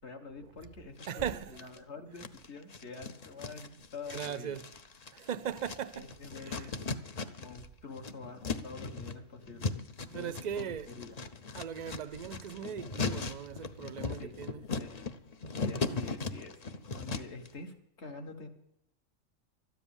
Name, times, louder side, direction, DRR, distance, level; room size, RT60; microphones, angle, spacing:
voice 1, 0.0-4.6 5.9-6.8 7.4-9.8 10.1-11.2 14.2-14.3 14.7-14.9 15.6-18.5, left 4 dB, 55° left, 1.8 m, -47 dB
sound 1, 1.0-1.8 2.2-7.7 7.9-17.5, left 4 dB, 40° left, 0.6 m, -38 dB
voice 2, 1.1-1.6 4.1-4.7 5.1-6.2 6.4-6.7 10.1-10.9 11.5-14.6 15.9-16.1, right 8 dB, 50° right, 0.5 m, -39 dB
13.0 x 10.0 x 7.1 m
omnidirectional pair, 1.4 m